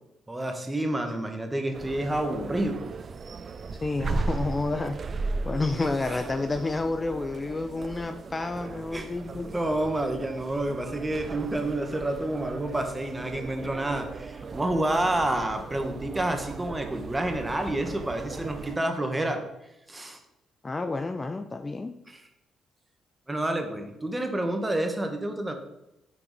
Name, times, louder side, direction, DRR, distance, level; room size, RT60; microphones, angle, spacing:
voice 1, 0.3-2.8 8.9-19.4 19.9-20.2 22.1-22.2 23.3-25.5, right 1 dB, 15° right, 5 dB, 1.2 m, -29 dB
sound 1, 1.7-18.8, right 4 dB, 45° right, 0.4 m, -37 dB
voice 2, 3.8-9.5 20.6-21.9, left 3 dB, 25° left, 8 dB, 0.5 m, -30 dB
6.3 x 4.6 x 5.2 m, 0.88 s
cardioid pair, 90°, 0 cm